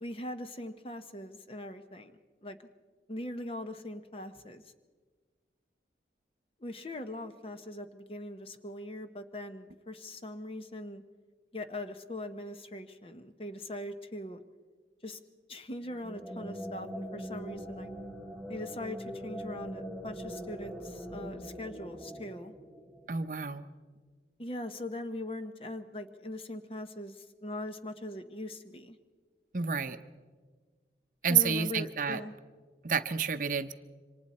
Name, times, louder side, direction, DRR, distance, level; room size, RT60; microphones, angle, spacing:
voice 1, 0.0-2.1 2.4-2.6 3.1-4.6 6.6-11.0 11.5-14.4 15.0-15.2 15.5-17.9 18.5-22.5 24.4-29.0 31.3-32.3, left 1 dB, 30° left, 8 dB, 0.9 m, -41 dB
sound 1, 15.8-23.2, equal, 15° left, 7.5 m, -42 dB
voice 2, 23.1-23.6 29.5-30.0 31.2-32.2 32.8-33.7, right 7 dB, 50° right, 10 dB, 0.7 m, -29 dB
27.5 x 24.5 x 4.3 m, 1.5 s
head